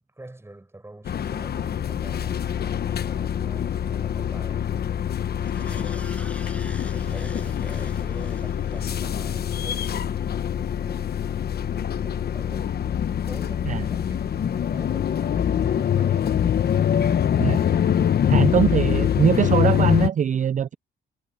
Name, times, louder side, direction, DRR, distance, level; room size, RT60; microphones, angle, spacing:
voice 1, 0.1-2.4 2.9-5.1 5.5-6.3 6.8-11.2 11.6-12.8 13.1-16.6, right 2 dB, 10° right, 7.8 m, -44 dB
sound 1, 1.0-20.1, left 9 dB, 50° left, 1.2 m, -24 dB
sound 2, 5.4-9.9 10.3-10.4, left 1 dB, 5° left, 7.8 m, -46 dB
voice 2, 17.4-17.7 18.3-20.7, right 8 dB, 40° right, 0.5 m, -22 dB
cardioid pair, 90°, 20 cm